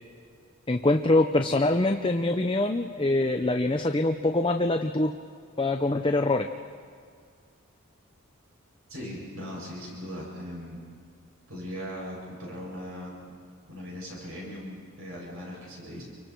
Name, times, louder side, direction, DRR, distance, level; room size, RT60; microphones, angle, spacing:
voice 1, 0.7-5.1 5.6-6.5, left 2 dB, 25° left, 5 dB, 0.6 m, -24 dB
voice 2, 8.9-10.8 11.5-13.4 13.7-16.0, equal, 80° right, -4 dB, 7.8 m, -39 dB
29.5 x 24.5 x 4.6 m, 2.1 s
head